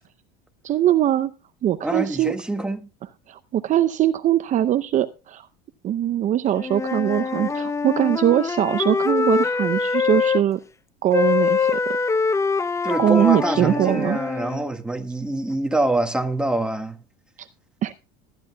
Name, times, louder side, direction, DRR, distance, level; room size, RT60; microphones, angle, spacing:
voice 1, 0.6-1.3 1.6-2.3 3.3-5.5 5.8-10.6 11.0-12.0 13.0-14.2 17.4-17.5 17.8-17.9, right 11 dB, 40° right, 0.7 m, -21 dB
voice 2, 1.8-2.9 12.8-17.0, right 1 dB, 5° right, 1.7 m, -25 dB
Wind instrument woodwind instrument, 6.5-10.4 11.1-14.6, left 5 dB, 15° left, 0.7 m, -24 dB
20.0 x 11.0 x 2.3 m
supercardioid pair, 105°, 20 cm